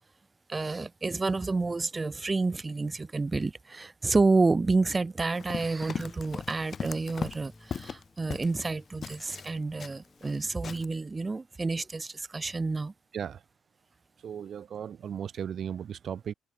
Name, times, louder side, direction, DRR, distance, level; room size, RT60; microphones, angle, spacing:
voice 1, 0.5-12.9, right 3 dB, 25° right, 0.3 m, -29 dB
Run, 5.3-8.7 9.0-10.4 10.6-10.9, left 6 dB, 45° left, 1.3 m, -38 dB
sound 1, 5.5-10.9, left 1 dB, 10° left, 1.9 m, -56 dB
voice 2, 14.2-16.3, right 8 dB, 55° right, 1.3 m, -36 dB
cardioid pair, 90°, 0 cm